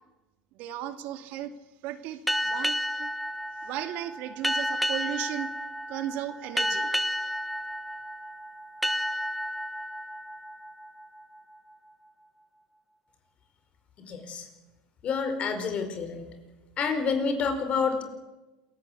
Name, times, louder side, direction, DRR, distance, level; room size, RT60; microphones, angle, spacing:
voice 1, 0.5-1.5 1.8-2.7 3.0-3.1 3.6-5.5 5.9-6.9, right 11 dB, 60° right, 8 dB, 2.3 m, -35 dB
sound 1, 2.3-11.6, equal, ahead, 1.1 m, -31 dB
voice 2, 14.1-14.5 15.0-16.3 16.8-18.0, left 5 dB, 40° left, 7 dB, 4.8 m, -28 dB
27.5 x 16.0 x 8.6 m, 1.1 s
supercardioid pair, 115°, 3 cm